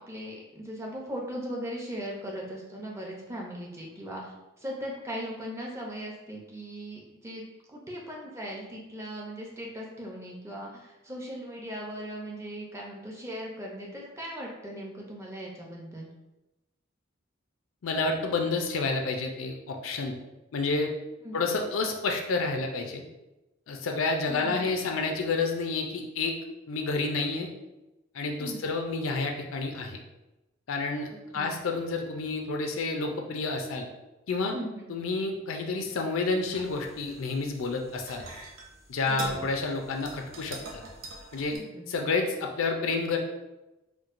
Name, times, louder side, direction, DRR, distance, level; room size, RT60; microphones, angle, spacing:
voice 1, 0.1-16.1 21.2-21.4 24.3-24.7 28.4-28.7 31.3-31.5 34.5-34.8 39.0-39.4 41.5-41.9, equal, 15° right, -2 dB, 0.5 m, -39 dB
voice 2, 17.8-20.2 20.5-20.9 21.3-23.0 23.7-26.3 26.7-27.5 28.1-30.0 30.7-33.9 34.3-34.5 34.9-38.2 38.9-40.8 41.3-41.6 41.9-43.2, left 3 dB, 85° left, 3 dB, 0.5 m, -29 dB
sound 1, 36.4-41.6, right 2 dB, 80° right, 0.7 m, -44 dB
4.5 x 2.2 x 2.5 m, 1.0 s
head